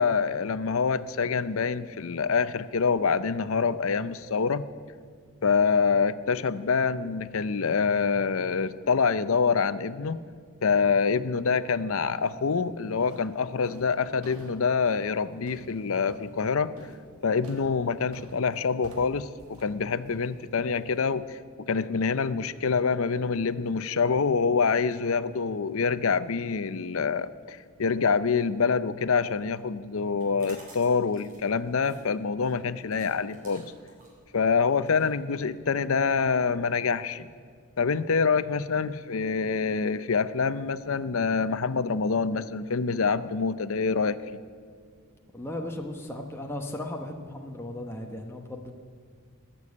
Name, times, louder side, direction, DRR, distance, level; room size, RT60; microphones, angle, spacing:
voice 1, 0.0-4.6 5.4-10.2 10.6-16.7 17.2-33.7 34.3-37.3 37.8-44.4, left 5 dB, 65° left, 14 dB, 0.6 m, -26 dB
sound 1, 12.2-12.5 13.0-21.0, right 1 dB, 80° right, 1.7 m, -50 dB
sound 2, 30.1-35.8, right 1 dB, 40° right, 4.5 m, -53 dB
voice 2, 45.3-48.7, left 1 dB, 10° left, 2 dB, 0.9 m, -36 dB
20.0 x 7.0 x 8.4 m, 2.1 s
head